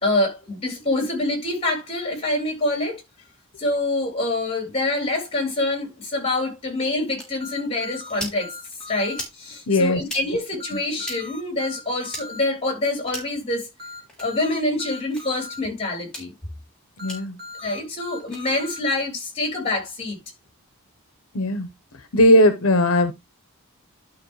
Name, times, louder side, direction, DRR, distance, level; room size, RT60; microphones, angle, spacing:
voice 1, 0.0-3.0 3.6-8.6 8.9-13.7 14.2-16.3 17.6-20.2, left 2 dB, 25° left, 3.5 m, -26 dB
sound 1, 7.2-7.3 8.1-8.4 9.1-9.4 10.0-10.2 11.0-11.2 12.1-12.3 13.1-13.4 14.1-14.3 15.1-15.2 16.0-16.3 17.1-17.2 18.2-18.4, equal, 5° left, 3.8 m, -35 dB
sound 2, 7.4-9.2 10.6-12.4 13.8-15.6 17.0-18.8, left 3 dB, 45° right, 2.9 m, -39 dB
voice 2, 9.7-10.0 17.0-17.3 21.3-21.7 22.1-23.1, left 1 dB, 80° left, 0.9 m, -17 dB
11.5 x 5.5 x 3.1 m
head